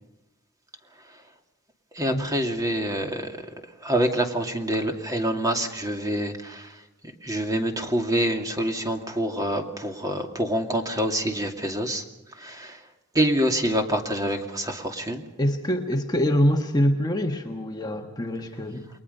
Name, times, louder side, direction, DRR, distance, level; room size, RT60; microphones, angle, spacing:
voice 1, 1.9-3.5 3.8-6.8 7.2-12.9 13.1-15.2, right 1 dB, 15° right, 3 dB, 2.4 m, -26 dB
voice 2, 15.4-18.9, equal, 20° left, 3 dB, 1.4 m, -24 dB
29.5 x 22.0 x 5.5 m, 0.95 s
head